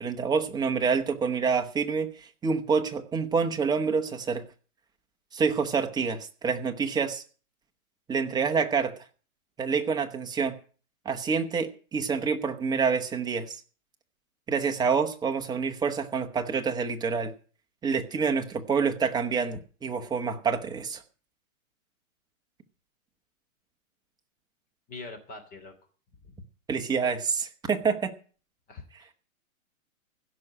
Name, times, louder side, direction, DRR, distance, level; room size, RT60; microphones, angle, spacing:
voice 1, 0.0-4.4 5.3-7.2 8.1-8.9 9.6-10.5 11.0-13.6 14.5-17.3 17.8-21.0 26.7-28.1, right 5 dB, 10° right, 5 dB, 1.1 m, -27 dB
voice 2, 24.9-25.7 26.2-26.4 28.7-29.1, left 3 dB, 20° left, 5 dB, 2.9 m, -43 dB
16.0 x 6.3 x 9.8 m, 0.40 s
hypercardioid pair, 140°, 42 cm